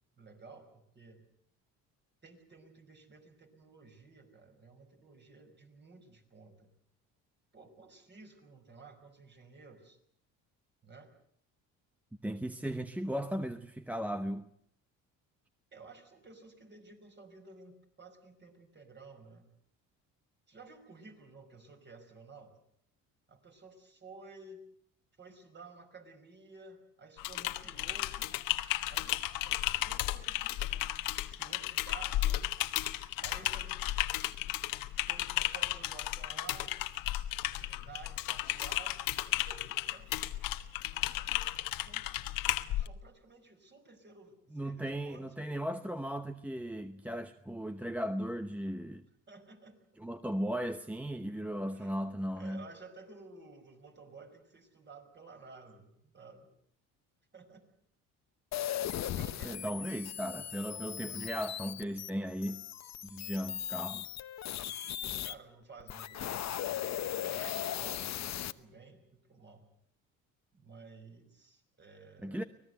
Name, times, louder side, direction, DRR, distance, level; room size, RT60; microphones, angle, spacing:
voice 1, 0.2-1.2 2.2-6.7 7.5-10.0 10.8-11.1 15.7-19.5 20.5-22.5 23.3-24.6 25.2-28.3 28.9-29.1 29.4-30.9 31.4-32.5 33.2-33.9 34.4-36.7 37.4-39.0 39.3-40.2 41.7-42.1 42.7-45.6 49.3-49.8 51.6-51.9 52.4-56.5 57.3-57.7 58.9-60.0 64.7-66.8 67.2-68.3 68.6-69.7 70.5-72.5, right 3 dB, 30° right, 5.5 m, -54 dB
voice 2, 12.2-14.5 44.5-49.0 50.0-52.6 59.4-62.6 63.0-64.1 72.2-72.4, equal, 5° right, 0.9 m, -37 dB
Typing, 27.2-42.9, left 14 dB, 75° left, 1.4 m, -34 dB
sound 1, 58.5-65.3 65.8-68.5, left 11 dB, 50° left, 1.0 m, -38 dB
25.0 x 18.5 x 8.0 m
cardioid pair, 100°, 34 cm